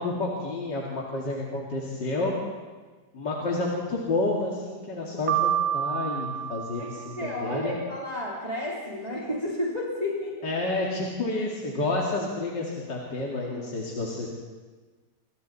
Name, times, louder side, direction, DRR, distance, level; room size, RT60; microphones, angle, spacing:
voice 1, 0.0-2.3 3.1-7.8 10.4-14.3, left 2 dB, 85° left, -3 dB, 3.1 m, -30 dB
Piano, 5.3-7.4, right 11 dB, 65° right, 1.7 m, -28 dB
voice 2, 6.8-10.5, left 1 dB, 20° right, -5 dB, 3.6 m, -32 dB
28.0 x 25.0 x 4.2 m, 1.4 s
omnidirectional pair, 1.8 m